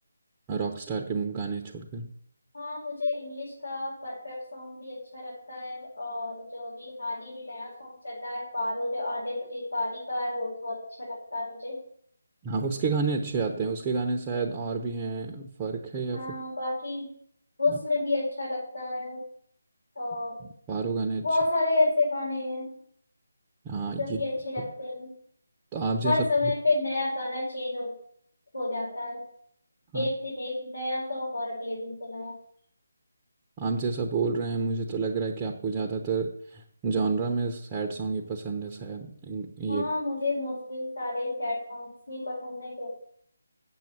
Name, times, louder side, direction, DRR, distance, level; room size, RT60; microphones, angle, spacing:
voice 1, 0.5-2.1 12.4-16.3 17.7-17.8 20.7-21.3 23.6-24.2 25.7-26.5 29.9-30.1 33.6-39.9, right 4 dB, 15° right, 2 dB, 0.8 m, -30 dB
voice 2, 2.5-11.8 16.1-17.1 17.6-19.2 20.0-20.4 21.2-22.7 24.0-25.1 26.0-27.9 28.5-29.2 29.9-32.3 39.7-43.0, left 2 dB, 75° left, -6 dB, 5.2 m, -30 dB
7.5 x 7.5 x 7.3 m, 0.65 s
figure-of-eight pair, 155°, 0 cm